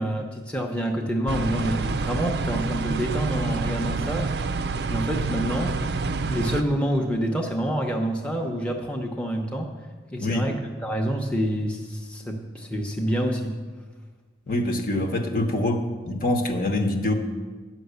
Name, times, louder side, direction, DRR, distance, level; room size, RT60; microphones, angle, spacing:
voice 1, 0.0-4.3 4.9-5.9 6.2-9.7 10.1-13.6, equal, 5° left, 0 dB, 0.8 m, -27 dB
sound 1, 1.3-6.6, right 3 dB, 60° right, 0.5 m, -27 dB
voice 2, 14.5-17.1, left 1 dB, 50° left, 4 dB, 1.1 m, -25 dB
10.5 x 6.3 x 8.1 m, 1.4 s
head